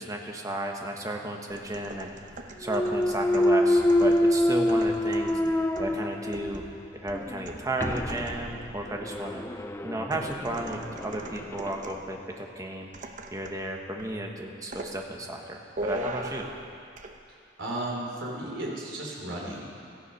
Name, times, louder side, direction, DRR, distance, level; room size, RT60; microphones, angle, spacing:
voice 1, 0.0-2.1 2.6-6.7 6.9-9.4 9.8-16.5, right 1 dB, 15° right, 2 dB, 1.3 m, -33 dB
sound 1, 1.5-8.6 10.1-12.1 12.9-13.7 14.0-14.2 14.7-15.0 15.8-16.7 17.0-17.1, right 2 dB, 40° right, 0.9 m, -41 dB
Thump thud, 2.6-6.7 7.1-11.8, left 1 dB, 15° left, 0.4 m, -26 dB
voice 2, 17.6-19.7, right 1 dB, 75° right, -2 dB, 3.3 m, -34 dB
17.0 x 13.5 x 5.6 m, 2.5 s
head